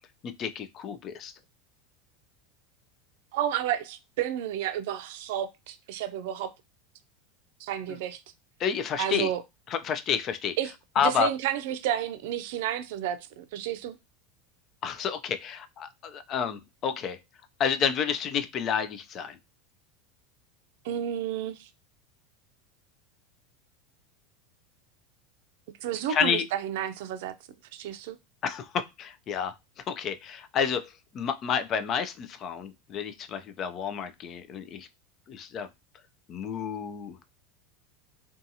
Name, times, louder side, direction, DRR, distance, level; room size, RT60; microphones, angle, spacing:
voice 1, 0.2-1.3 7.9-8.0 8.6-9.3 9.7-10.6 11.0-11.3 14.8-17.2 17.6-19.4 26.1-26.4 28.4-29.5 29.9-30.9 31.1-34.9 35.3-35.7 36.3-37.2, left 7 dB, 40° left, 0.3 m, -30 dB
voice 2, 3.3-6.5 7.6-8.2 9.0-9.4 10.6-14.0 20.8-21.7 25.8-27.3 27.7-28.2, right 10 dB, 75° right, 0.4 m, -31 dB
2.6 x 2.3 x 2.7 m
supercardioid pair, 130°, 0 cm